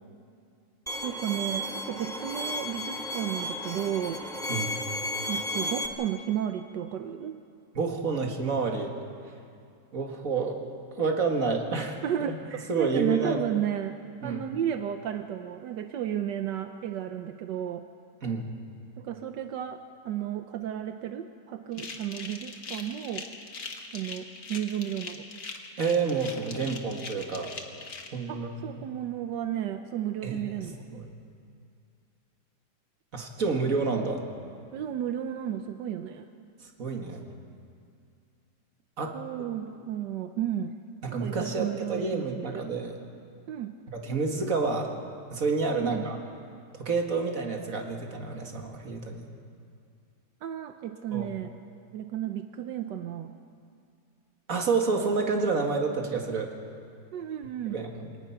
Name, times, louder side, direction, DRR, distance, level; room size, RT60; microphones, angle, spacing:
Bowed string instrument, 0.9-5.9, left 1 dB, ahead, 1.2 m, -33 dB
voice 1, 1.0-4.2 5.3-7.4 12.0-17.8 19.0-23.2 23.9-25.3 28.3-30.8 34.7-36.3 39.1-40.7 41.1-42.6 43.5-43.7 45.8-46.0 50.4-51.5 51.9-53.4 57.1-57.8, right 10 dB, 85° right, 7 dB, 1.4 m, -33 dB
voice 2, 4.5-4.8 7.7-8.9 9.9-10.6 10.9-12.4 12.7-13.4 14.2-14.4 18.2-18.5 25.8-27.5 28.1-28.5 30.2-30.6 30.9-31.1 33.1-34.2 36.8-37.2 39.0-39.2 41.0-42.9 44.0-44.9 45.3-46.2 46.7-49.3 51.1-51.3 54.5-56.5 57.7-58.1, right 4 dB, 50° right, 2 dB, 2.3 m, -29 dB
sound 1, 21.7-28.1, left 4 dB, 50° left, 1.9 m, -41 dB
25.0 x 18.5 x 5.9 m, 2.4 s
omnidirectional pair, 1.8 m